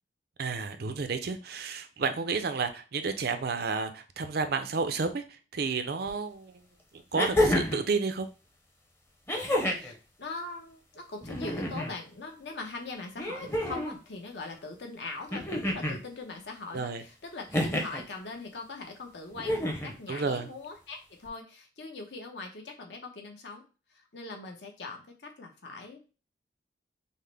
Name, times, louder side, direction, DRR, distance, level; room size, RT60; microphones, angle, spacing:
voice 1, 0.4-5.2 5.5-6.6 6.9-8.3 16.7-17.0 20.1-20.5, right 4 dB, 60° right, 9 dB, 0.5 m, -31 dB
sound 1, 6.1-6.2 7.1-7.9 9.3-9.9 11.2-11.9 13.2-14.0 15.3-16.0 17.5-18.0 19.4-20.0 21.3-21.4, left 1 dB, 15° left, 0.7 m, -29 dB
voice 2, 9.5-9.9 10.2-23.6 23.9-26.0, left 3 dB, 70° left, 2 dB, 0.9 m, -41 dB
5.5 x 2.1 x 3.4 m, 0.33 s
head